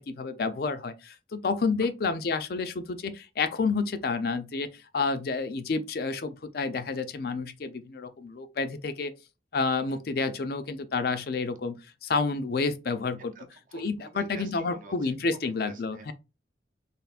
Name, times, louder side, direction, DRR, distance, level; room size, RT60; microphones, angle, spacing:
voice 1, 0.1-4.7 4.9-9.1 9.5-11.8 12.0-13.3 13.7-16.1, left 4 dB, 55° left, 0.4 m, -29 dB
voice 2, 13.3-16.1, right 3 dB, 45° right, 0.6 m, -48 dB
3.4 x 2.5 x 2.4 m
head